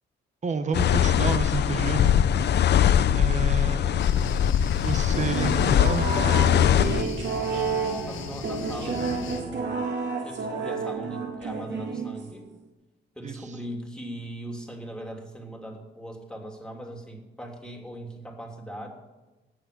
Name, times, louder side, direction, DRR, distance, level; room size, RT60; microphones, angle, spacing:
voice 1, 0.4-2.2 3.1-4.0 4.8-6.1 13.2-13.4, right 4 dB, 35° right, 9 dB, 1.2 m, -30 dB
sound 1, 0.7-7.0, left 9 dB, 60° left, 0.7 m, -21 dB
sound 2, 4.0-9.4, left 4 dB, 85° left, 2.0 m, -37 dB
sound 3, 5.1-12.5, right 4 dB, 65° right, 2.4 m, -31 dB
voice 2, 7.5-9.9 10.2-12.5 13.1-18.9, right 1 dB, 5° left, 1 dB, 3.2 m, -39 dB
18.0 x 7.1 x 8.5 m, 1.1 s
cardioid pair, 90°, 20 cm